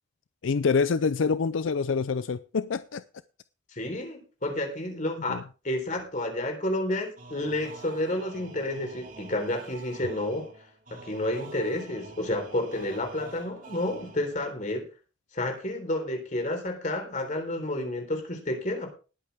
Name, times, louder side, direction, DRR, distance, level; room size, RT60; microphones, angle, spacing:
voice 1, 0.4-3.0 5.3-5.4, left 5 dB, 80° left, 0.5 m, -26 dB
voice 2, 3.7-5.4 5.6-10.5 10.9-14.9 15.3-18.9, left 1 dB, 40° left, 3.8 m, -30 dB
sound 1, 7.2-14.6, right 3 dB, 45° right, 2.9 m, -47 dB
19.5 x 8.5 x 3.5 m
head